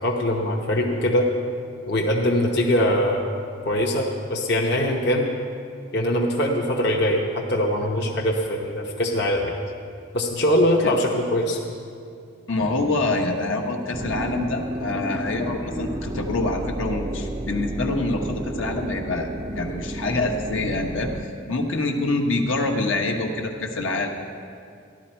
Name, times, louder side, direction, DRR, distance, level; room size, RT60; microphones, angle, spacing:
voice 1, 0.0-1.3 1.9-3.3 3.6-5.3 5.9-9.5 10.1-11.6, left 1 dB, 55° left, -1 dB, 0.9 m, -22 dB
voice 2, 12.5-19.3 19.6-21.1 21.5-24.1, left 2 dB, 80° left, 2 dB, 1.1 m, -25 dB
sound 1, 13.9-21.2, right 1 dB, 15° right, 0.4 m, -31 dB
14.5 x 11.0 x 4.4 m, 2.4 s
head